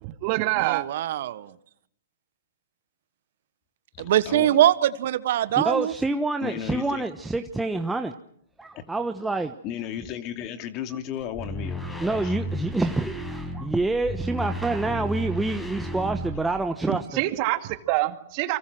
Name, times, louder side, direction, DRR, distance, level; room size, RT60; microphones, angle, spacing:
voice 1, 0.0-0.8 16.9-18.6, right 18 dB, 45° right, 8 dB, 2.2 m, -26 dB
voice 2, 0.6-1.5 4.0-5.9, right 12 dB, 60° right, 14 dB, 1.4 m, -22 dB
voice 3, 4.0-4.6 6.4-7.0 9.6-12.3, left 10 dB, 40° left, 8 dB, 2.6 m, -34 dB
voice 4, 5.6-8.1 8.6-9.5 12.0-17.2, right 2 dB, 5° right, 5 dB, 1.2 m, -27 dB
sound 1, 11.3-16.7, equal, 10° left, 6.0 m, -33 dB
29.5 x 24.5 x 6.3 m, 0.68 s
hypercardioid pair, 120°, 0 cm